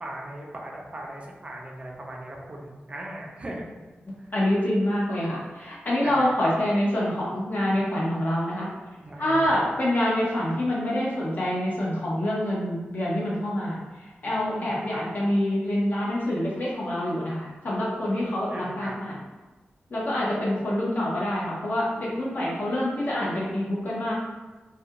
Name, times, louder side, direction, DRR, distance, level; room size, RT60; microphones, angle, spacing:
voice 1, 0.0-3.8 4.2-4.3 6.0-6.5 9.0-9.7 14.5-15.0 18.5-19.0, right 1 dB, 30° right, -1 dB, 0.4 m, -38 dB
voice 2, 4.0-8.7 9.2-19.1 19.9-24.1, left 1 dB, 50° left, -6 dB, 0.8 m, -26 dB
2.4 x 2.2 x 2.8 m, 1.2 s
wide cardioid pair, 140°, 4 cm